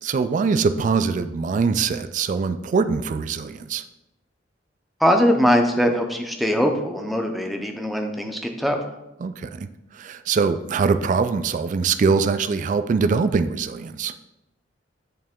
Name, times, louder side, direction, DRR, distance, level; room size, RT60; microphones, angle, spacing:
voice 1, 0.0-3.8 9.2-9.7 9.9-14.1, right 5 dB, 40° right, 10 dB, 0.3 m, -23 dB
voice 2, 5.0-8.8, equal, ahead, 3 dB, 0.6 m, -21 dB
8.7 x 3.3 x 3.6 m, 0.92 s
head